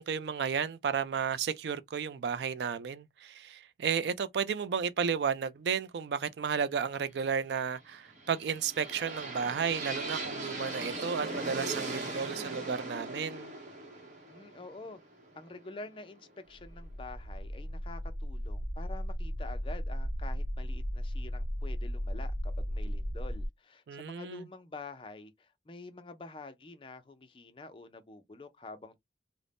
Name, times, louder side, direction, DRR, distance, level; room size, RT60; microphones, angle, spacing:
voice 1, 0.0-13.5 23.9-24.5, right 6 dB, 75° right, 0.3 m, -33 dB
sound 1, 8.1-16.0, right 2 dB, 45° right, 0.8 m, -39 dB
voice 2, 14.3-15.0 15.3-29.0, left 3 dB, 30° left, 0.4 m, -47 dB
sound 2, 16.5-23.5, equal, 50° left, 0.9 m, -35 dB
2.5 x 2.0 x 3.3 m
head